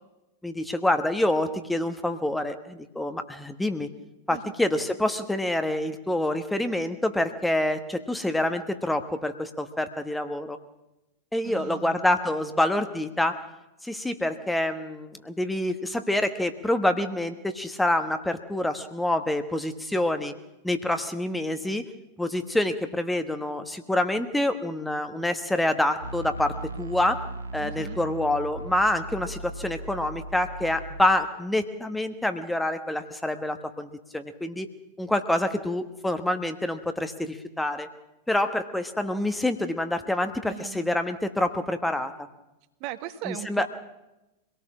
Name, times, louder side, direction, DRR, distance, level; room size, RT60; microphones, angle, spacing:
voice 1, 0.4-3.9 4.3-10.6 11.3-13.4 13.8-20.3 20.6-21.8 22.2-27.2 27.5-34.7 35.0-37.9 38.3-42.3 43.2-43.7, left 1 dB, 5° left, 8 dB, 1.3 m, -27 dB
voice 2, 11.4-12.0 27.6-28.0 40.4-41.0 42.8-43.7, right 13 dB, 45° right, 9 dB, 1.5 m, -38 dB
sound 1, 26.0-31.0, right 2 dB, 75° right, 1.3 m, -38 dB
24.5 x 18.0 x 6.2 m, 0.94 s
figure-of-eight pair, 90°, 0 cm